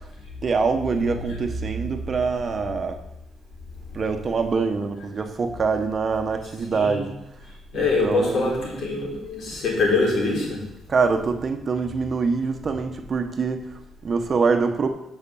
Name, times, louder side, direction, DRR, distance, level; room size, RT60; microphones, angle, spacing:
voice 1, 0.4-3.0 3.9-7.1 7.7-8.6 10.9-14.9, right 4 dB, 40° right, 6 dB, 1.1 m, -24 dB
voice 2, 6.7-7.1 7.7-10.7, left 3 dB, 65° left, -2 dB, 4.1 m, -24 dB
9.7 x 5.9 x 7.0 m, 0.86 s
cardioid pair, 90°, 0 cm